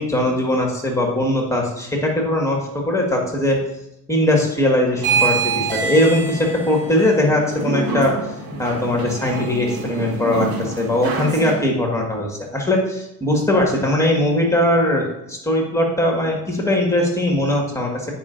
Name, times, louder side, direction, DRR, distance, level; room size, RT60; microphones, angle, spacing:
voice 1, 0.0-3.6 4.1-8.2 8.6-18.1, left 1 dB, 5° left, 0 dB, 1.9 m, -20 dB
sound 1, 5.0-11.5, right 5 dB, 50° right, 2.3 m, -25 dB
10.5 x 5.6 x 2.7 m, 0.85 s
hypercardioid pair, 70°, 47 cm